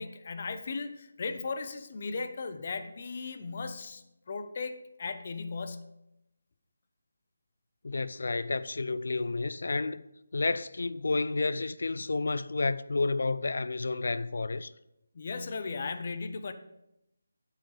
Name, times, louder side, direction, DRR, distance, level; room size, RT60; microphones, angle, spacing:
voice 1, 0.0-5.9 15.1-16.5, left 4 dB, 45° left, 0.7 m, -37 dB
voice 2, 7.8-10.1 10.3-14.7, left 3 dB, 70° left, 0.3 m, -30 dB
8.9 x 7.5 x 3.3 m
figure-of-eight pair, 160°, 0 cm